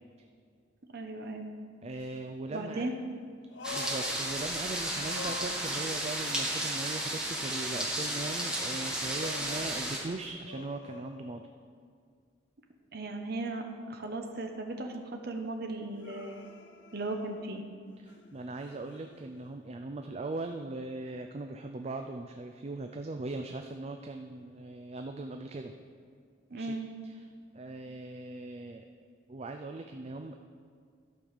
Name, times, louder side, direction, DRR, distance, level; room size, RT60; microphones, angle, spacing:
voice 1, 0.8-1.5 2.5-3.0 12.9-16.5 16.9-17.6 26.5-26.9, right 2 dB, 60° right, 4 dB, 0.9 m, -37 dB
voice 2, 1.8-2.9 3.7-11.5 18.0-25.7 26.5-26.7 27.0-27.1 27.5-28.9 29.3-30.4, right 2 dB, 35° right, 5 dB, 0.4 m, -39 dB
sound 1, 2.0-2.1 3.5-4.7 5.0-6.2 9.1-11.7 16.0-17.7 18.1-19.5 20.5-20.6, left 4 dB, 75° left, 0.6 m, -47 dB
sound 2, 3.6-10.0, right 1 dB, 5° right, 1.3 m, -33 dB
12.0 x 5.5 x 6.5 m, 2.1 s
head